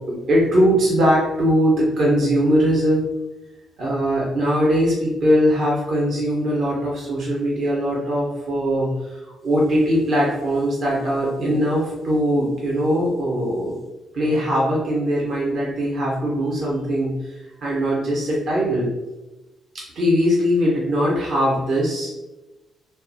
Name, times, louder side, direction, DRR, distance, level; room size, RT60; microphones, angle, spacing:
voice 1, 0.1-3.1 3.8-13.8 14.1-18.9 20.0-22.1, equal, 60° right, -4 dB, 0.8 m, -21 dB
3.4 x 2.1 x 2.7 m, 1.1 s
hypercardioid pair, 40°, 0 cm